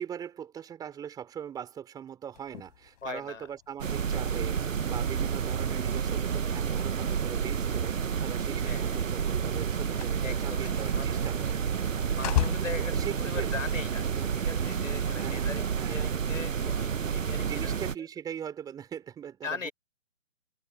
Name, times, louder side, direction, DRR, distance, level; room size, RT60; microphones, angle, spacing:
voice 1, 0.0-11.6 12.9-13.5 14.1-14.3 15.2-16.1 17.4-19.7, right 8 dB, 10° right, 4.8 m, -41 dB
sound 1, 2.3-13.8, left 13 dB, 35° left, 3.9 m, -39 dB
voice 2, 3.0-3.5 4.1-4.3 8.6-9.0 10.2-11.1 12.2-14.1 14.4-17.7 19.4-19.7, left 5 dB, 80° left, 6.0 m, -40 dB
sound 2, 3.8-17.9, right 7 dB, 80° right, 1.0 m, -30 dB
hypercardioid pair, 155°, 38 cm